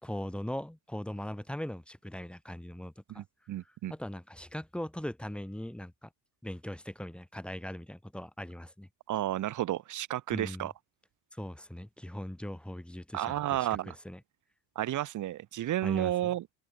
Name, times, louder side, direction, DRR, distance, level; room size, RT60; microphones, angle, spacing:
voice 1, 0.0-3.2 3.9-6.1 6.4-8.9 10.3-10.7 11.3-14.2 15.8-16.3, left 1 dB, ahead, 3.9 m, -40 dB
voice 2, 3.1-3.9 9.1-10.7 13.1-14.0 14.7-16.5, right 13 dB, 45° right, 2.9 m, -32 dB
cardioid pair, 170°, 41 cm